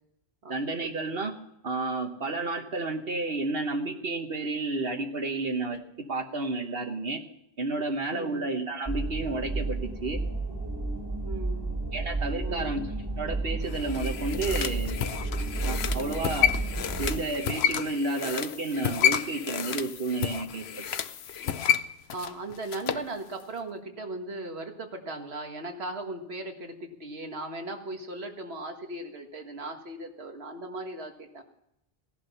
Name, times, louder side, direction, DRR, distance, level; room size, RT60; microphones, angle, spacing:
voice 1, 0.5-1.3 1.6-7.2 7.6-10.2 11.9-12.8 13.2-15.0 15.6-16.6 17.0-20.8, right 3 dB, 70° right, 4 dB, 1.3 m, -31 dB
voice 2, 8.1-8.5 11.2-11.7 12.4-12.8 15.9-16.3 22.1-31.4, right 2 dB, 90° right, 4 dB, 1.9 m, -38 dB
sound 1, 8.9-17.2, right 2 dB, 25° right, 1.7 m, -32 dB
sound 2, 13.7-23.1 23.4-23.5, left 9 dB, 85° left, 1.0 m, -30 dB
17.0 x 11.5 x 5.6 m, 0.81 s
omnidirectional pair, 1.0 m